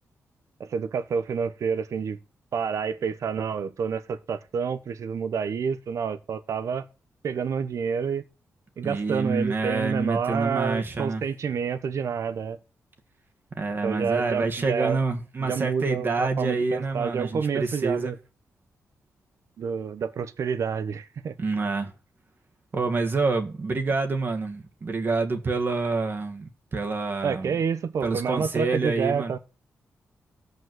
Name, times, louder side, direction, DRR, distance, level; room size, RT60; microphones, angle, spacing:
voice 1, 0.6-2.2 2.5-6.8 7.2-8.2 8.8-12.6 13.8-15.0 15.4-18.2 19.6-21.3 27.2-29.4, right 6 dB, 70° right, 1.1 m, -28 dB
voice 2, 8.8-11.2 13.5-18.1 21.4-21.9 22.7-27.6 28.0-29.3, right 3 dB, 40° right, 1.8 m, -27 dB
14.0 x 5.4 x 7.8 m
cardioid pair, 100°, 5 cm